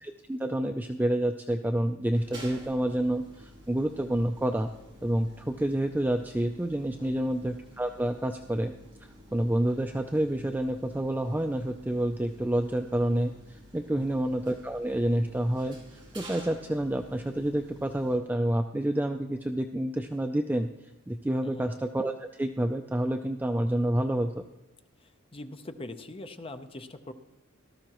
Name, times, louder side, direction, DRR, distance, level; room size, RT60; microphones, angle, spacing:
voice 1, 0.0-4.7 5.0-8.7 9.3-15.8 16.1-20.7 21.1-24.3, right 1 dB, 10° right, 5 dB, 0.3 m, -28 dB
sound 1, 2.1-18.2, right 1 dB, 25° right, 3.5 m, -51 dB
voice 2, 7.0-7.3 13.9-14.2 21.4-21.7 25.0-27.1, left 1 dB, 25° left, 8 dB, 0.7 m, -43 dB
18.0 x 13.0 x 3.0 m, 0.96 s
head